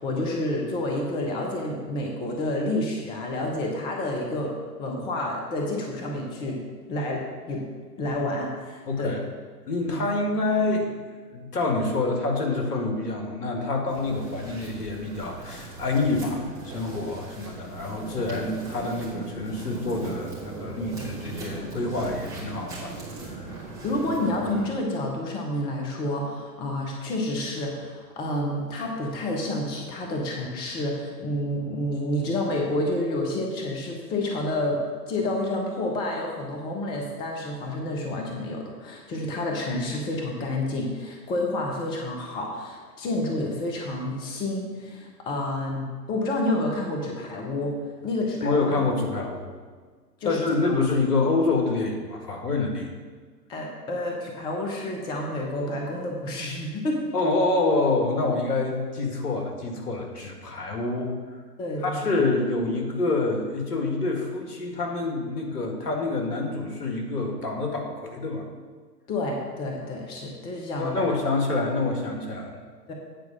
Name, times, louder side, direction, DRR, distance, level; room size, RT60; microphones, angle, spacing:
voice 1, 0.0-4.5 4.8-6.6 6.9-7.7 8.0-9.1 9.9-10.0 23.8-34.8 35.1-47.7 48.0-48.8 50.2-50.5 53.5-57.0 61.6-62.3 69.1-71.1 72.9-73.0, left 1 dB, 10° left, 0 dB, 0.6 m, -29 dB
voice 2, 8.9-9.2 9.7-11.0 11.3-22.9 23.3-23.5 48.4-49.5 50.2-52.9 57.1-61.1 61.8-68.4 70.8-72.6, left 3 dB, 65° left, 1 dB, 1.9 m, -27 dB
sound 1, 13.9-24.7, right 2 dB, 5° right, 2.8 m, -38 dB
8.9 x 4.7 x 6.3 m, 1.5 s
figure-of-eight pair, 110°, 49 cm